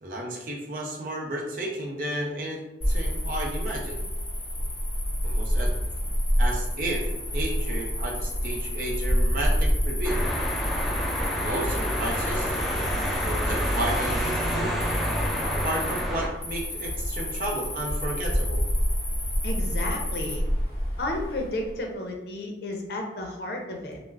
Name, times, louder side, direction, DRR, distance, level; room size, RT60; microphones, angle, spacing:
voice 1, 0.0-4.0 5.2-5.7 6.4-10.3 11.4-12.6 13.2-14.7 15.4-18.6, right 1 dB, 50° right, 0 dB, 0.5 m, -33 dB
Cricket, 2.8-21.7, equal, 35° left, 0.9 m, -28 dB
sound 1, 10.0-16.3, equal, ahead, 0.5 m, -28 dB
voice 2, 19.4-20.5 21.0-24.0, left 1 dB, 65° left, 1 dB, 0.5 m, -32 dB
2.3 x 2.0 x 3.3 m, 0.96 s
head